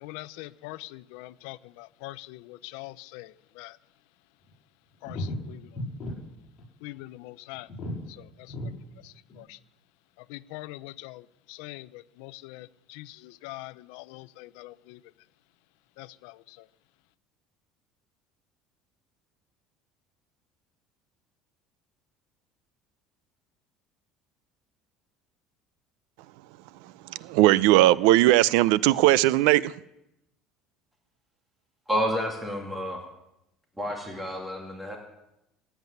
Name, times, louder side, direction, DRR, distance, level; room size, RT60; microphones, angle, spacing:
voice 1, 0.0-3.7 5.0-5.7 6.8-7.7 8.2-8.3 9.0-9.6 10.3-15.0 16.0-16.4, left 19 dB, 85° left, 0.5 m, -43 dB
sound 1, 4.5-4.6 5.0-6.1 6.4-6.6 7.0-7.1 7.5-8.1 8.5-8.7 9.3-9.4, left 1 dB, 30° left, 7.0 m, -34 dB
voice 2, 27.1-29.7, right 16 dB, 80° right, 0.5 m, -19 dB
voice 3, 31.9-33.0 33.8-35.0, equal, 5° right, 2.3 m, -30 dB
16.5 x 8.1 x 9.5 m
cardioid pair, 160°, 0 cm